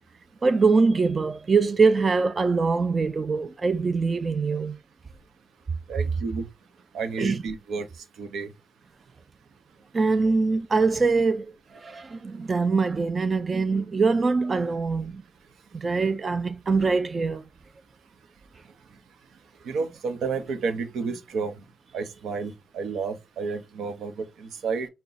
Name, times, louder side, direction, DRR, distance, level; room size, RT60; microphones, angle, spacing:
voice 1, 0.4-4.8 7.2-7.4 9.9-11.5 11.7-15.2 15.7-17.4, right 4 dB, 25° right, 0.3 m, -23 dB
voice 2, 5.9-6.5 6.9-7.9 8.2-8.5 19.6-21.5 21.9-24.9, right 4 dB, 80° right, 0.8 m, -31 dB
5.8 x 2.2 x 3.9 m
wide cardioid pair, 175°, 0 cm